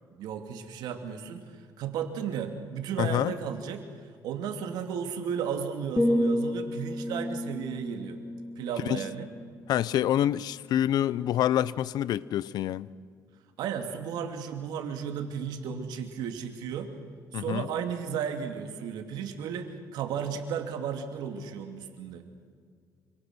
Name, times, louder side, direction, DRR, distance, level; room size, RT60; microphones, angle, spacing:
voice 1, 0.1-1.5 1.8-3.8 4.2-8.2 8.6-9.3 13.6-16.9 17.3-22.2, right 7 dB, 90° right, 2.8 m, -34 dB
voice 2, 3.0-3.3 8.8-9.0 9.7-12.9 17.3-17.7, left 11 dB, 75° left, 0.7 m, -27 dB
sound 1, 6.0-9.9 10.3-10.6, left 1 dB, 5° left, 0.7 m, -31 dB
27.0 x 25.5 x 6.3 m
cardioid pair, 110°, 7 cm